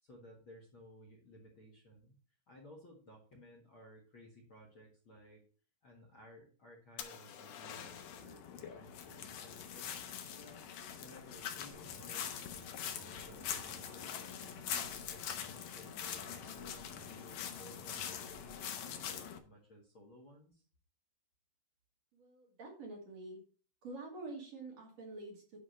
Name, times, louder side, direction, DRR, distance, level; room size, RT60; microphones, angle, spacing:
voice 1, 0.0-2.1 2.5-5.4 5.8-10.6 11.0-14.1 14.6-20.6, equal, 50° left, 0 dB, 1.8 m, -57 dB
sound 1, 7.0-8.4 12.1-12.6, left 9 dB, 85° left, 2.9 m, -48 dB
sound 2, 7.7-19.4, left 8 dB, 65° left, 1.9 m, -43 dB
sound 3, 11.7-18.6, right 1 dB, 75° right, 4.5 m, -60 dB
voice 2, 22.1-23.4 23.8-25.6, right 2 dB, 50° right, -1 dB, 3.3 m, -47 dB
10.0 x 3.6 x 6.3 m, 0.40 s
omnidirectional pair, 4.1 m